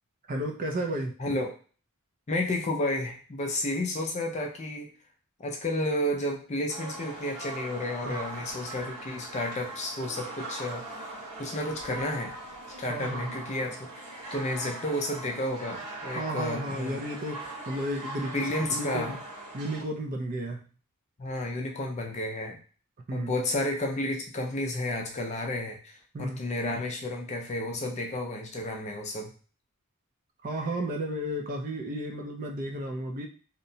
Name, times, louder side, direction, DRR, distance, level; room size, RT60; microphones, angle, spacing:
voice 1, 0.3-1.1 8.0-8.2 12.9-13.3 16.1-18.4 18.7-19.2 19.5-20.6 23.1-23.3 26.1-26.4 30.4-33.3, right 1 dB, 40° right, 3 dB, 0.4 m, -33 dB
voice 2, 1.2-1.5 2.3-4.9 5.4-10.8 11.4-12.4 12.8-17.0 18.2-19.2 21.2-22.6 23.1-29.3, left 1 dB, 30° left, 2 dB, 0.4 m, -32 dB
sound 1, 6.7-19.8, right 2 dB, 85° right, 1.3 m, -40 dB
2.8 x 2.1 x 2.7 m, 0.39 s
head